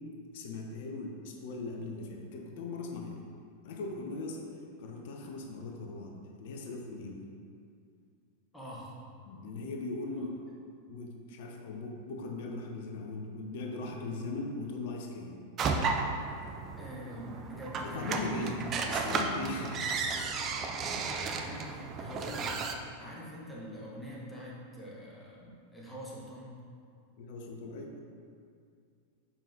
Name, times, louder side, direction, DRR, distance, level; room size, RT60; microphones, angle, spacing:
voice 1, 0.3-3.2 3.6-4.5 4.8-7.2 9.2-10.3 10.9-15.4 17.8-19.9 27.2-28.0, left 3 dB, 50° left, 2 dB, 0.7 m, -39 dB
voice 2, 8.5-8.9 10.2-10.3 16.8-18.6 20.9-22.6 23.0-26.6, equal, 10° left, -5 dB, 1.3 m, -44 dB
sound 1, 15.6-22.7, right 4 dB, 30° right, 0.5 m, -34 dB
7.3 x 5.3 x 2.8 m, 2.3 s
figure-of-eight pair, 90°, 0 cm